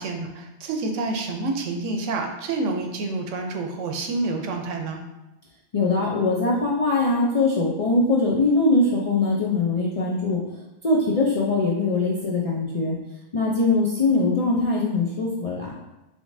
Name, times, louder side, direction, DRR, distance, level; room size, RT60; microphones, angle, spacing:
voice 1, 0.0-5.0, right 3 dB, 80° right, 3 dB, 1.0 m, -28 dB
voice 2, 5.7-10.4 10.8-13.0 13.3-15.7, left 3 dB, 55° left, -4 dB, 0.4 m, -22 dB
5.0 x 3.2 x 2.6 m, 0.98 s
omnidirectional pair, 1.3 m